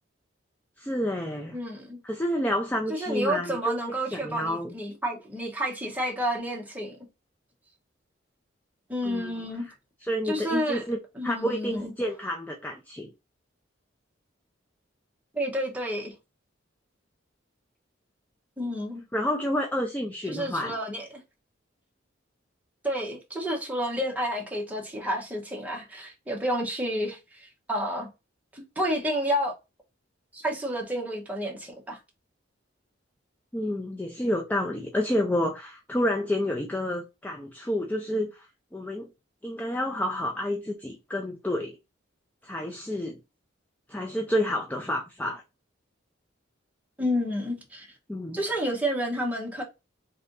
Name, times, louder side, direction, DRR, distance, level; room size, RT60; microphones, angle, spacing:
voice 1, 0.8-1.6 2.0-4.7 9.0-9.4 10.1-11.0 11.2-13.1 19.1-20.7 33.5-39.1 39.4-41.8 42.4-43.2 43.9-45.4 48.1-48.4, left 1 dB, 10° left, 0.4 m, -29 dB
voice 2, 1.5-2.0 2.9-7.0 8.9-9.7 10.2-10.8 11.2-11.9 15.3-16.1 18.6-19.0 20.3-21.0 22.8-28.1 28.5-29.6 30.3-32.0 47.0-47.9 48.3-49.6, equal, 10° right, 1.0 m, -30 dB
3.3 x 2.7 x 3.8 m
head